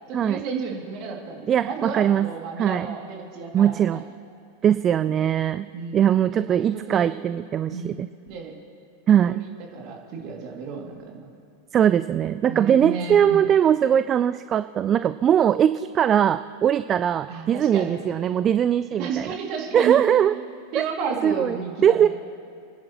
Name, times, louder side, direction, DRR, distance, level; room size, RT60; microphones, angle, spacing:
voice 1, 0.1-4.0 4.9-5.1 5.7-6.0 6.3-7.2 7.7-7.9 8.3-8.5 9.2-11.3 12.5-13.5 17.3-18.1 19.0-20.0 20.7-22.1, right 5 dB, 45° right, 0 dB, 2.5 m, -32 dB
voice 2, 1.5-2.3 2.6-2.9 3.5-4.0 4.6-8.1 9.1-9.4 11.7-19.3 19.7-20.4 21.2-21.6 21.8-22.1, right 9 dB, 30° right, 13 dB, 0.3 m, -21 dB
28.5 x 10.5 x 3.0 m, 2.5 s
figure-of-eight pair, 90°, 0 cm